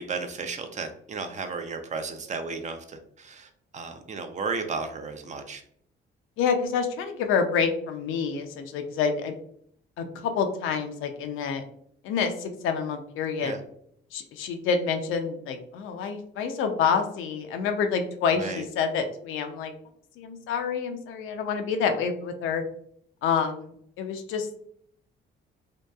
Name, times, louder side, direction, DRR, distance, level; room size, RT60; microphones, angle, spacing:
voice 1, 0.0-5.6 13.4-13.6 18.4-18.6, right 4 dB, 35° right, 7 dB, 0.4 m, -34 dB
voice 2, 6.4-9.3 10.0-11.6 12.0-13.6 14.1-19.7 20.2-22.6 23.2-24.5, left 6 dB, 85° left, 6 dB, 0.4 m, -28 dB
2.7 x 2.2 x 2.2 m, 0.66 s
cardioid pair, 90°, 20 cm